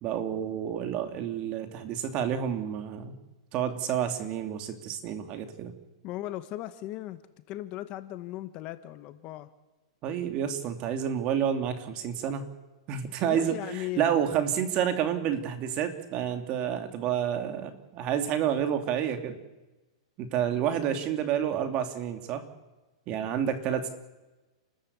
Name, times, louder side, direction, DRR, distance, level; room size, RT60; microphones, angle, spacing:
voice 1, 0.0-3.1 3.5-5.7 10.0-12.4 12.9-19.4 20.2-22.5 23.1-23.9, right 9 dB, 35° right, 7 dB, 2.5 m, -29 dB
voice 2, 6.0-7.2 7.5-9.5 13.3-14.0, left 15 dB, 35° left, 12 dB, 1.2 m, -37 dB
29.0 x 13.5 x 8.5 m, 1.1 s
hypercardioid pair, 150°, 3 cm